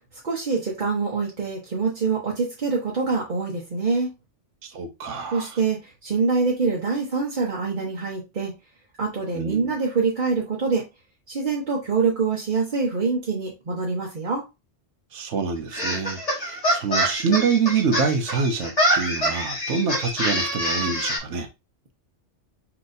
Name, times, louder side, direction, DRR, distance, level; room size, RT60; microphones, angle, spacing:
voice 1, 0.2-4.1 5.3-8.5 9.0-10.9 11.3-14.4, right 4 dB, 45° right, 1.0 m, -25 dB
voice 2, 4.6-5.6 9.3-9.7 15.1-21.5, right 5 dB, 80° right, 1.2 m, -26 dB
sound 1, 15.7-21.2, equal, 30° left, 1.9 m, -25 dB
5.9 x 2.9 x 2.6 m
omnidirectional pair, 1.2 m